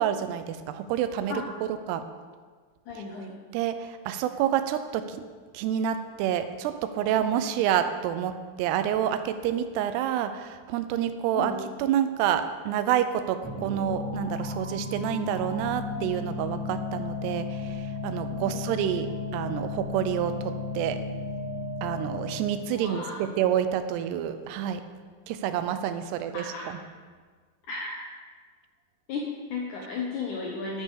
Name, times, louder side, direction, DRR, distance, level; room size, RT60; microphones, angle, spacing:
voice 1, 0.0-1.4 1.9-2.0 3.0-3.1 3.5-5.2 5.5-21.0 21.8-24.8 25.3-26.8, right 10 dB, 90° right, 10 dB, 2.7 m, -28 dB
voice 2, 2.9-3.4 11.3-11.6 18.3-18.6 22.7-23.3 26.3-26.7 27.7-28.1 29.1-30.8, left 4 dB, 75° left, -1 dB, 1.8 m, -34 dB
sound 1, 13.4-22.7, left 3 dB, 15° right, 1.5 m, -34 dB
12.0 x 5.5 x 5.1 m, 1.5 s
omnidirectional pair, 4.7 m